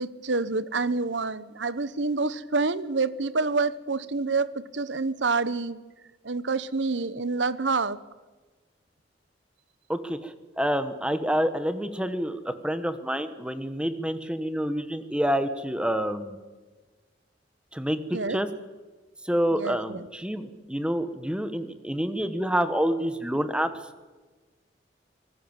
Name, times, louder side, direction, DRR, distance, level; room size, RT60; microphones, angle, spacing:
voice 1, 0.0-5.8 6.2-8.0 18.1-18.4 19.6-20.1, right 3 dB, 85° right, 16 dB, 1.1 m, -27 dB
voice 2, 9.9-16.4 17.7-18.5 19.2-23.7, equal, 5° right, 10 dB, 1.4 m, -28 dB
25.0 x 20.0 x 7.4 m, 1.3 s
head